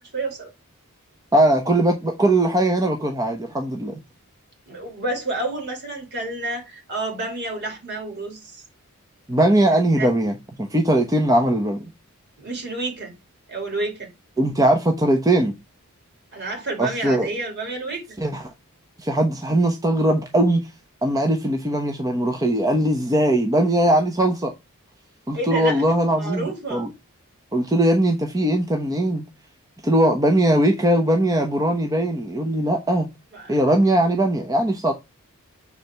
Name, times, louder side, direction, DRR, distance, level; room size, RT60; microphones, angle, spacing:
voice 1, 0.1-0.5 4.7-8.6 9.9-10.1 12.4-13.1 13.5-14.1 16.3-18.0 25.3-25.8 26.2-26.8 33.3-33.5, right 2 dB, 50° right, 3.3 m, -29 dB
voice 2, 1.3-4.0 9.3-10.3 10.6-11.8 14.4-15.5 16.8-17.3 18.2-18.5 19.0-20.6 21.0-24.5 25.3-26.9 27.5-29.2 29.8-33.1 33.5-34.9, right 1 dB, 15° right, 0.9 m, -20 dB
6.8 x 4.8 x 3.5 m
head